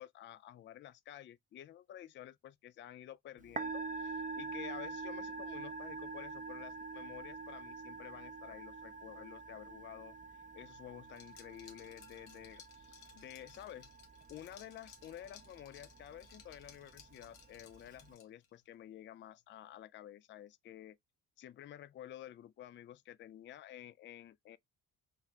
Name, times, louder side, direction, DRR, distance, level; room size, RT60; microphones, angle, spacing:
voice 1, 0.0-10.2 10.5-13.9 14.3-21.0 21.4-24.6, left 11 dB, 30° left, 0.4 m, -51 dB
Musical instrument, 3.4-18.1, right 3 dB, 20° right, 0.5 m, -46 dB
Liquid, 11.1-18.5, left 8 dB, 75° left, 1.0 m, -60 dB
3.8 x 2.2 x 2.6 m
hypercardioid pair, 50°, 41 cm